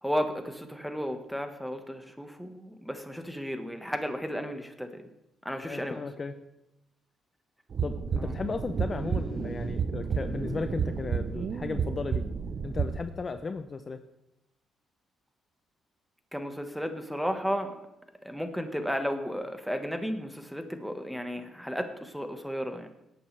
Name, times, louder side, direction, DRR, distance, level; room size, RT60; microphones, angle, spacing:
voice 1, 0.0-5.1 5.4-6.0 8.2-8.3 16.3-17.8 18.2-22.9, equal, ahead, 6 dB, 1.4 m, -33 dB
voice 2, 5.6-6.4 7.8-12.2 12.6-14.0, left 4 dB, 35° left, 9 dB, 0.6 m, -35 dB
sound 1, 7.7-13.0, right 6 dB, 50° right, 0.7 m, -31 dB
18.0 x 8.6 x 3.4 m, 0.90 s
cardioid pair, 90°, 0 cm